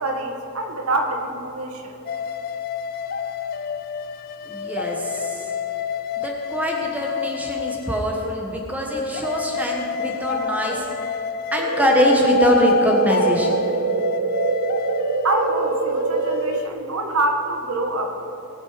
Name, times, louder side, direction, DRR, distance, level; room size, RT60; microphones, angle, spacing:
voice 1, 0.0-1.9 15.2-18.1, right 2 dB, 80° right, 3 dB, 1.3 m, -25 dB
sound 1, 2.1-8.4 8.9-16.7, left 6 dB, 45° left, 0.3 m, -28 dB
voice 2, 4.5-5.5 6.2-10.9 11.5-13.6, equal, 5° right, -1 dB, 1.3 m, -23 dB
sound 2, 11.6-16.6, right 5 dB, 60° right, 0.5 m, -24 dB
19.0 x 6.4 x 5.0 m, 2.9 s
head